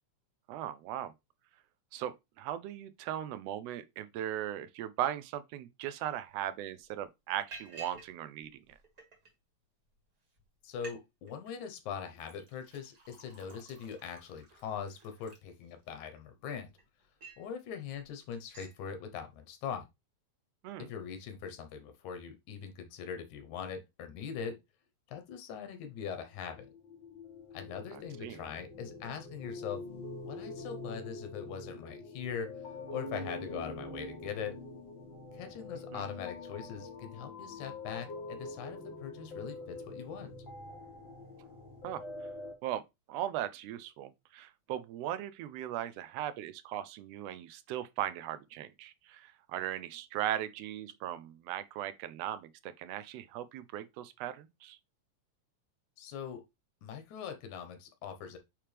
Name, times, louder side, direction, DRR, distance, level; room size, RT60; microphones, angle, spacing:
voice 1, 0.5-1.1 1.9-8.8 20.6-20.9 27.9-28.4 35.9-36.0 41.8-42.0 42.6-42.8 43.1-54.8, right 11 dB, 80° right, 1.5 m, -38 dB
Liquid, 6.3-6.4 6.8-7.0 7.5-8.1 8.4-9.3 10.0-10.1 10.4-10.5 10.7-11.0 11.3-11.7 12.2-16.0 16.5-17.5 17.9-18.1 18.3-18.8, right 3 dB, 35° right, 1.8 m, -53 dB
voice 2, 10.6-16.7 17.4-19.9 20.8-24.6 25.1-26.7 27.5-29.8 30.3-32.5 32.9-34.5 35.3-40.3 56.0-56.4 56.8-58.4, left 7 dB, 85° left, 2.4 m, -41 dB
sound 1, 26.5-42.5, left 2 dB, 45° left, 2.5 m, -45 dB
8.7 x 3.3 x 3.3 m
omnidirectional pair, 3.3 m